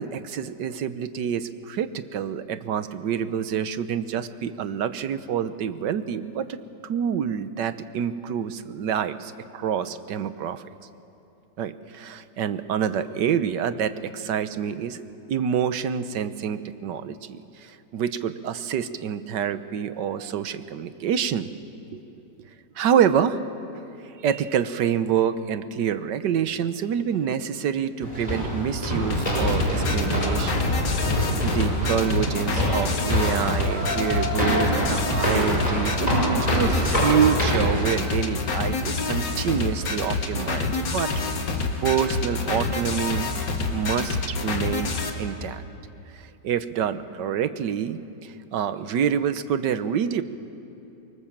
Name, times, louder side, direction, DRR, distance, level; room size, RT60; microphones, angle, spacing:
voice 1, 0.0-10.7 11.6-15.0 15.3-21.5 21.9-22.0 22.8-23.4 24.0-30.7 31.4-41.1 41.8-43.3 43.7-45.6 46.1-50.2, right 8 dB, 80° right, 12 dB, 1.5 m, -27 dB
sound 1, 28.0-37.8, equal, 20° left, 6.5 m, -25 dB
sound 2, 29.1-45.1, left 3 dB, 85° left, 2.5 m, -27 dB
24.5 x 24.5 x 7.3 m, 2.9 s
omnidirectional pair, 1.9 m